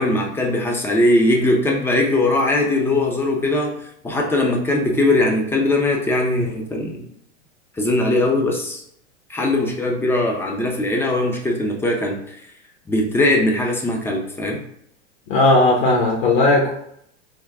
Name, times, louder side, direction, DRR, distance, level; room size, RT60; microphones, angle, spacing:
voice 1, 0.0-3.8 4.0-7.0 7.8-8.8 9.3-12.2 12.9-14.6, left 1 dB, 5° left, 1 dB, 0.4 m, -20 dB
voice 2, 15.3-16.7, left 2 dB, 55° left, -2 dB, 1.0 m, -16 dB
3.4 x 2.2 x 3.3 m, 0.70 s
hypercardioid pair, 115°, 36 cm